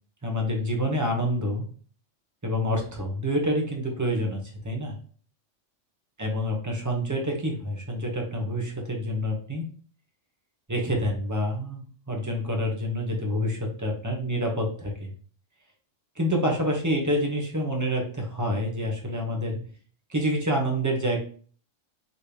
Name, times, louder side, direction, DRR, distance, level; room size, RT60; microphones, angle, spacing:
voice 1, 0.2-1.6 2.4-5.0 6.2-9.6 10.7-15.1 16.2-19.6 20.1-21.2, equal, 15° right, 0 dB, 0.9 m, -27 dB
4.6 x 3.1 x 3.4 m, 0.44 s
omnidirectional pair, 1.3 m